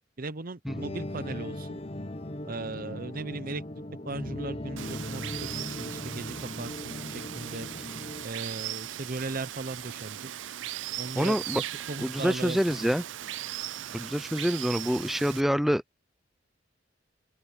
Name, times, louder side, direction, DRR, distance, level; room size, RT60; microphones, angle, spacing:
voice 1, 0.2-1.8 2.4-3.6 4.0-5.2 5.5-7.7 8.2-10.3 11.0-12.9, right 3 dB, 50° right, 0.9 m, -37 dB
sound 1, 0.7-8.2, left 1 dB, 35° left, 1.1 m, -38 dB
Water, 4.8-15.4, right 12 dB, 75° right, 0.5 m, -38 dB
voice 2, 11.2-11.6 12.0-13.0 13.9-15.8, equal, ahead, 0.5 m, -26 dB
open air
head